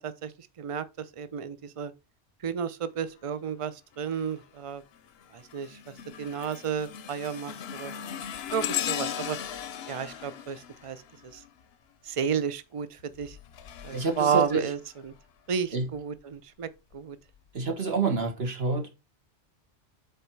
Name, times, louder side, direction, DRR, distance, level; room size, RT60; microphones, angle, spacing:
voice 1, 0.0-1.9 2.4-4.8 5.3-5.8 6.2-7.9 8.5-9.4 9.9-11.0 11.3-11.4 12.0-13.4 13.8-14.8 15.0-15.1 15.5-17.2, right 7 dB, 40° right, 0.5 m, -32 dB
sound 1, 4.0-4.4 4.9-11.7 13.0-15.2 15.8-16.0 16.9-17.0, left 10 dB, 65° left, 0.8 m, -38 dB
voice 2, 13.9-14.6 15.7-15.9 17.5-18.9, right 4 dB, 55° right, 1.7 m, -27 dB
6.8 x 4.2 x 4.6 m
omnidirectional pair, 1.2 m